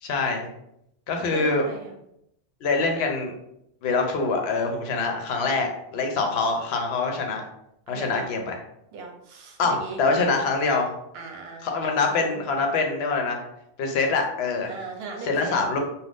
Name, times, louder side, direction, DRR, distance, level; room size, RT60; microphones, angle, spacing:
voice 1, 0.0-0.5 1.1-1.7 2.6-3.3 3.8-7.4 7.9-8.5 9.6-10.9 11.6-13.4 13.8-14.7 15.2-15.8, left 3 dB, 75° left, 3 dB, 0.8 m, -24 dB
voice 2, 1.3-1.9 7.9-8.3 8.9-10.3 10.7-10.8 11.1-12.5 14.7-15.6, right 3 dB, 70° right, 2 dB, 0.8 m, -38 dB
2.5 x 2.2 x 3.4 m, 0.79 s
omnidirectional pair, 1.1 m